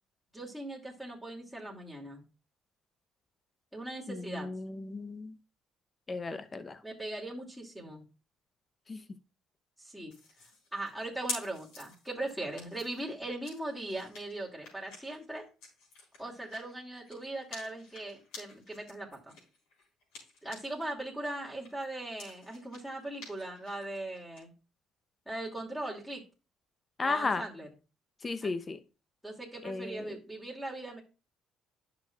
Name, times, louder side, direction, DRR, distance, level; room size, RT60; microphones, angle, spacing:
voice 1, 0.3-2.2 3.7-4.5 6.3-6.4 6.8-8.0 9.8-10.1 10.4-15.5 16.2-19.4 20.4-24.5 25.3-26.2 27.0-27.7 28.4-28.6 29.2-31.0, right 1 dB, ahead, -1 dB, 2.4 m, -39 dB
voice 2, 4.1-5.4 6.1-6.8 8.9-9.0 27.0-27.4 28.2-28.8 29.6-30.0, left 3 dB, 35° left, 11 dB, 0.7 m, -34 dB
sound 1, 10.1-20.9 21.2-24.4, left 3 dB, 80° left, 4.0 m, -48 dB
10.5 x 6.1 x 2.4 m, 0.32 s
hypercardioid pair, 60°, 0 cm